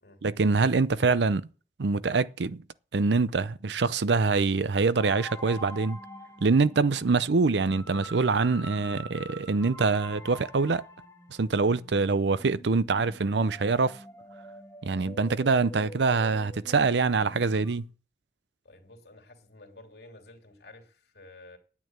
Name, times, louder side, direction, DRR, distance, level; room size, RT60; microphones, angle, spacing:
voice 1, 0.2-1.5 1.8-2.6 2.9-6.0 6.4-10.8 11.4-13.9 14.8-17.9, right 4 dB, 85° right, 0.6 m, -24 dB
sound 1, 5.0-17.7, equal, 15° left, 2.4 m, -45 dB
voice 2, 18.6-21.6, left 2 dB, 65° left, 2.8 m, -51 dB
9.5 x 8.5 x 8.9 m
head